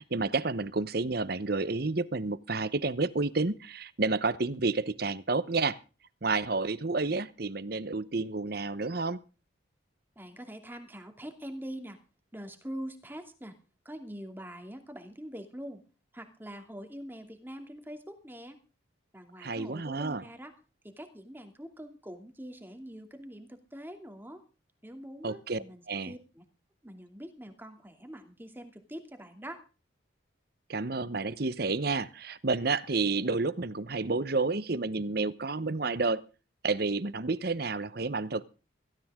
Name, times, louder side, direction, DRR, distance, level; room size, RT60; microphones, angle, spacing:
voice 1, 0.0-5.8 6.2-9.2 19.4-20.2 25.2-26.1 30.7-36.2 36.6-38.4, right 3 dB, 50° right, 0.9 m, -30 dB
voice 2, 10.2-12.0 12.3-13.5 13.8-15.8 16.1-18.6 19.1-20.5 20.8-24.4 24.8-26.4 26.8-29.6, equal, 10° right, 2.6 m, -44 dB
17.5 x 16.0 x 3.7 m
head